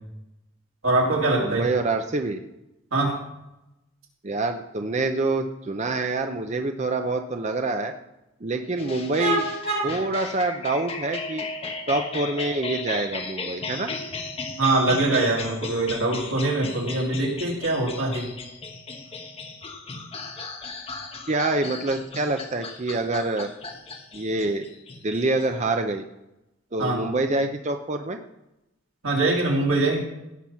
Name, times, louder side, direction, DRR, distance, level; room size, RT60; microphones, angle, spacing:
voice 1, 0.8-1.7 2.9-3.1 9.2-9.9 14.6-18.3 26.8-27.0 29.0-30.0, right 2 dB, 85° right, -1 dB, 3.1 m, -23 dB
voice 2, 1.4-2.4 4.2-7.9 8.4-9.5 9.8-11.5 11.9-13.9 21.3-23.5 24.1-24.7 25.0-26.0 26.7-28.2, right 2 dB, 35° right, 6 dB, 0.6 m, -26 dB
sound 1, 8.8-25.6, left 3 dB, 30° left, 1.2 m, -36 dB
17.0 x 5.9 x 5.8 m, 0.92 s
head